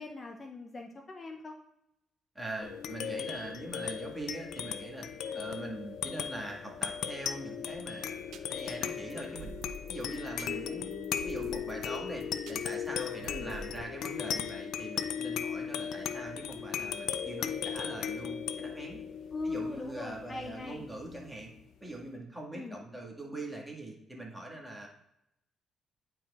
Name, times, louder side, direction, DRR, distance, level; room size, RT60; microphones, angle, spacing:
voice 1, 0.0-1.5 5.2-5.4 13.3-13.5 19.3-20.9 22.5-22.8, left 3 dB, 35° left, 3 dB, 0.6 m, -40 dB
voice 2, 2.4-5.1 5.3-9.6 9.9-19.0 19.4-21.5 21.8-24.9, right 2 dB, 10° right, -1 dB, 1.8 m, -42 dB
sound 1, 2.6-21.5, left 8 dB, 80° left, 0.4 m, -37 dB
sound 2, 8.2-13.8, right 3 dB, 85° right, 0.5 m, -49 dB
10.0 x 4.6 x 2.4 m, 0.82 s
cardioid pair, 90°, 0 cm